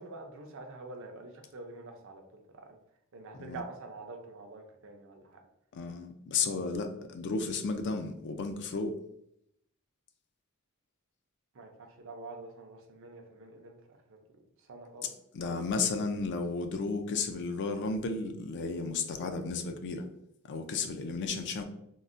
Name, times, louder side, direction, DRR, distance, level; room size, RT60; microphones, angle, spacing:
voice 1, 0.0-2.2 2.5-2.7 3.1-5.2 6.5-6.6 11.5-14.2 14.7-15.1, right 3 dB, 60° right, 4 dB, 0.5 m, -46 dB
voice 2, 5.7-8.9 15.3-20.1 20.5-21.6, left 4 dB, 50° left, 6 dB, 0.4 m, -33 dB
3.7 x 2.1 x 2.5 m, 0.76 s
head